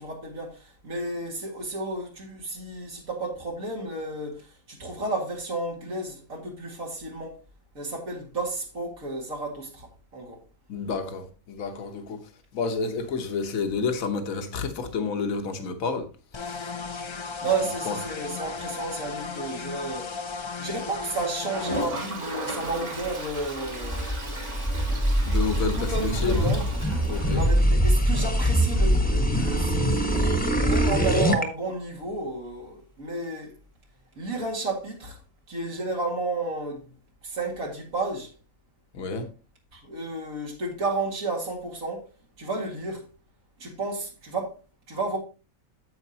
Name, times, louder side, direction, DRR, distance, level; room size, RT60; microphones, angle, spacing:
voice 1, 0.0-7.4 7.7-10.4 17.4-20.1 20.6-24.1 25.7-26.8 27.1-29.9 30.6-33.6 34.2-35.2 35.5-36.9 37.2-38.3 39.7-42.1 42.4-43.1 43.6-44.6 44.9-45.2, right 2 dB, 75° right, 2.5 m, -32 dB
voice 2, 10.7-16.1 16.5-16.7 17.9-18.0 25.2-25.9 26.2-26.5 27.1-27.4 38.9-39.3, left 4 dB, 75° left, 1.5 m, -30 dB
sound 1, 16.3-21.9, left 5 dB, 50° left, 0.3 m, -35 dB
Toilet flush, 21.4-28.1 28.4-28.5 28.7-28.8 29.1-29.2 31.7-31.8 33.1-33.2, right 1 dB, 55° right, 2.9 m, -36 dB
sound 2, 23.4-31.4, equal, 5° left, 1.1 m, -23 dB
9.5 x 7.9 x 2.8 m
omnidirectional pair, 1.5 m